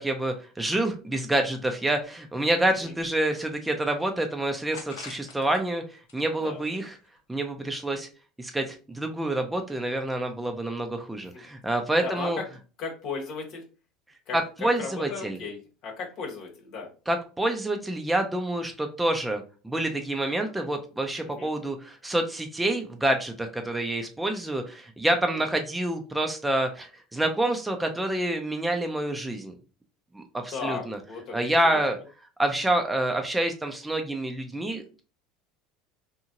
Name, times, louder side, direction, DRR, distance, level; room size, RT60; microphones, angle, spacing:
voice 1, 0.0-7.0 7.3-8.1 8.4-12.4 14.3-15.4 17.1-29.5 30.1-31.0 31.3-32.0 32.4-35.0, right 1 dB, 10° right, 4 dB, 0.5 m, -27 dB
sound 1, 3.2-4.0 4.7-5.6 6.0-7.2, left 5 dB, 80° left, 0.7 m, -47 dB
voice 2, 12.0-12.4 12.8-13.6 14.3-16.9 21.4-21.5 25.3-25.5 30.5-31.8, left 5 dB, 60° left, 0 dB, 1.0 m, -36 dB
2.9 x 2.6 x 2.5 m, 0.34 s
hypercardioid pair, 85°, 0 cm